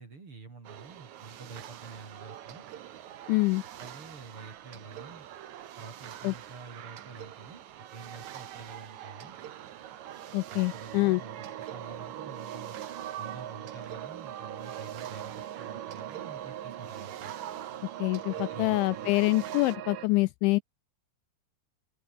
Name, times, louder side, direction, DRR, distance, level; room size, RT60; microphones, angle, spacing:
voice 1, 0.0-2.6 3.8-5.3 5.8-9.4 10.5-12.8 13.2-17.3 18.3-19.1, right 4 dB, 30° right, 4.1 m, -48 dB
sound 1, 0.6-19.8, right 11 dB, 90° right, 1.6 m, -45 dB
voice 2, 3.3-3.6 6.2-6.3 10.3-11.2 18.0-20.6, left 22 dB, 85° left, 2.8 m, -26 dB
sound 2, 9.3-20.1, right 11 dB, 60° right, 2.4 m, -41 dB
open air
omnidirectional pair, 5.7 m